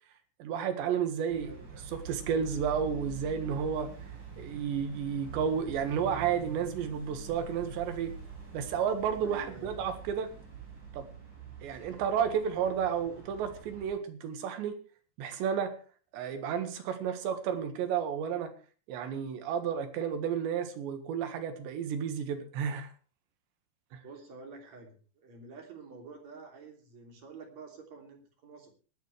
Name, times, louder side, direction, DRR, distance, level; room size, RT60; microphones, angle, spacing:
voice 1, 0.4-1.5 2.1-3.9 4.4-8.1 8.5-10.3 10.9-11.1 11.6-14.8 15.2-15.7 16.1-18.5 18.9-22.9, right 7 dB, 85° right, 7 dB, 3.9 m, -32 dB
sound 1, 1.3-13.9, right 6 dB, 25° right, 5.3 m, -45 dB
voice 2, 9.2-9.7 24.0-28.7, right 4 dB, 40° right, 2 dB, 3.9 m, -49 dB
24.0 x 9.9 x 3.3 m, 0.37 s
omnidirectional pair, 5.0 m